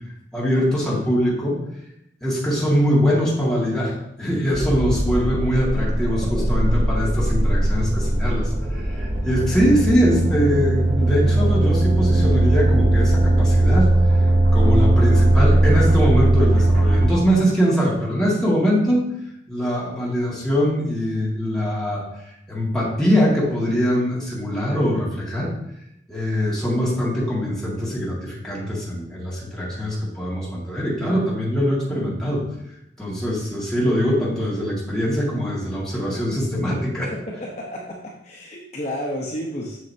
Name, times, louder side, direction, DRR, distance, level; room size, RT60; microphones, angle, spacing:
voice 1, 0.3-1.6 2.2-13.9 14.5-19.0 19.5-22.0 22.5-25.5 26.1-32.4 33.0-37.1, equal, 5° left, -7 dB, 1.9 m, -22 dB
sound 1, 4.5-17.1, right 1 dB, 45° right, 1.1 m, -19 dB
voice 2, 37.4-39.8, equal, 35° left, -3 dB, 0.9 m, -31 dB
7.6 x 6.5 x 2.8 m, 0.81 s
head